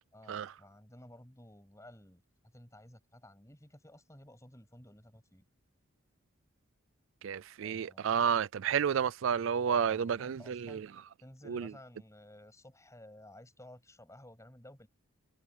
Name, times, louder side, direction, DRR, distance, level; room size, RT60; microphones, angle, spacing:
voice 1, 0.1-2.2 2.5-5.4 7.6-8.2 9.7-10.8 11.2-14.9, left 1 dB, 15° left, 7.5 m, -54 dB
voice 2, 7.2-10.9 11.5-11.7, right 7 dB, 65° right, 0.4 m, -31 dB
head